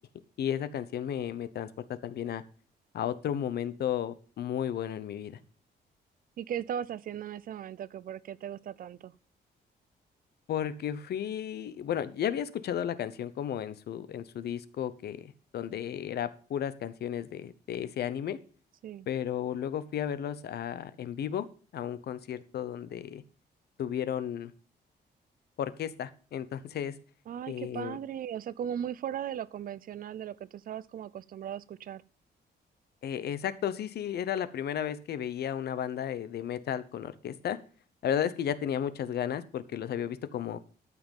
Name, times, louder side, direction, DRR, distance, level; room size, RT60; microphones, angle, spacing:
voice 1, 0.4-1.7 2.0-2.4 2.9-5.4 10.5-18.4 19.1-21.5 21.7-23.2 23.8-24.5 25.6-27.0 27.5-28.0 33.0-37.6 38.0-40.6, left 9 dB, 65° left, 0.9 m, -33 dB
voice 2, 6.4-9.1 18.8-19.1 27.3-32.0, right 9 dB, 55° right, 0.5 m, -37 dB
13.0 x 5.8 x 5.4 m
cardioid pair, 155°, 18 cm